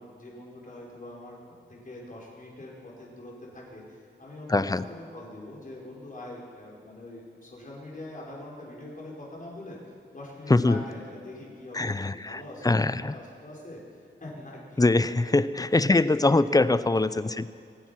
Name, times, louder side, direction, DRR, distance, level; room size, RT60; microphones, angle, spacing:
voice 1, 0.0-9.8 10.1-12.8 13.1-14.9 15.7-16.3 16.7-16.8 17.2-17.3, left 1 dB, 45° left, -4 dB, 5.1 m, -43 dB
voice 2, 4.5-4.8 10.5-10.8 11.7-13.1 14.8-17.5, left 2 dB, 20° left, 15 dB, 0.5 m, -23 dB
25.5 x 9.4 x 5.9 m, 2.4 s
wide cardioid pair, 75°, 20 cm